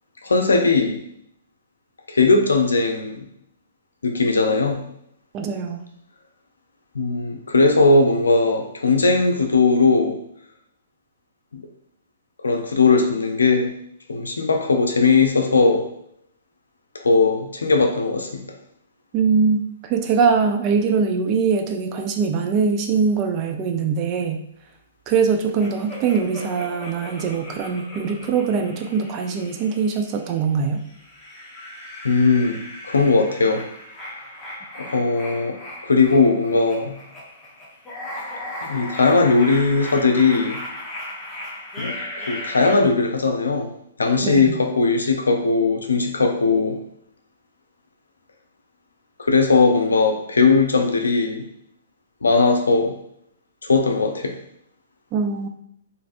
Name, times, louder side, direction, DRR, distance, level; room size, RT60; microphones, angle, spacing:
voice 1, 0.2-1.0 2.1-3.2 4.0-4.8 6.9-10.2 11.5-11.6 12.4-13.7 14.1-15.9 17.0-18.4 32.0-33.6 34.8-35.6 35.9-37.0 38.6-40.6 41.8-41.9 42.3-43.7 44.0-46.8 49.2-51.4 52.2-52.9 53.6-54.4, left 3 dB, 85° left, 4 dB, 0.5 m, -18 dB
voice 2, 5.3-5.8 19.1-24.4 25.1-30.8 44.2-44.6 55.1-55.5, right 5 dB, 35° right, 5 dB, 0.4 m, -22 dB
sound 1, 25.6-30.3 30.8-42.8, left 1 dB, 15° left, 0.8 m, -37 dB
3.2 x 2.5 x 2.5 m, 0.71 s
hypercardioid pair, 125°, 0 cm